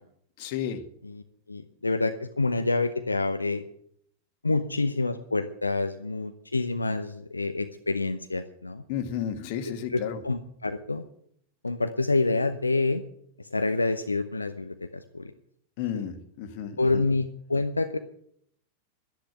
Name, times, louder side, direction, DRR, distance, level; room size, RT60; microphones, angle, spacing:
voice 1, 0.4-0.8 8.9-10.2 15.8-17.0, left 9 dB, 50° left, 9 dB, 1.8 m, -32 dB
voice 2, 1.5-3.6 4.4-8.8 9.9-11.0 11.6-13.0 13.4-15.3 15.9-16.0 16.8-18.0, left 3 dB, 80° left, 8 dB, 0.8 m, -27 dB
11.5 x 10.5 x 9.1 m, 0.67 s
figure-of-eight pair, 90°, 0 cm